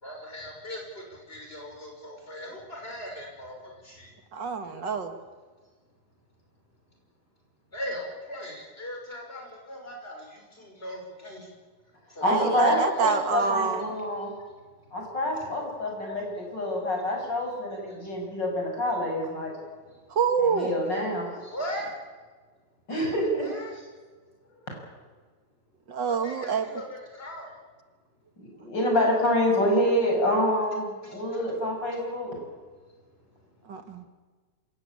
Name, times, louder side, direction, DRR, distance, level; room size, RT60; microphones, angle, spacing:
voice 1, 0.0-4.1 7.7-11.5 12.1-13.5 16.0-16.2 17.9-18.1 21.4-21.9 23.4-23.8 26.1-27.5, equal, 30° left, 1 dB, 6.3 m, -39 dB
voice 2, 4.3-5.1 12.2-13.9 20.1-20.8 25.9-26.7 33.7-34.1, right 5 dB, 75° right, 8 dB, 2.4 m, -26 dB
voice 3, 12.2-14.3 14.9-19.5 20.4-21.3 22.9-23.5 28.4-32.4, left 1 dB, 75° left, 1 dB, 7.5 m, -27 dB
27.0 x 16.5 x 8.7 m, 1.4 s
omnidirectional pair, 2.0 m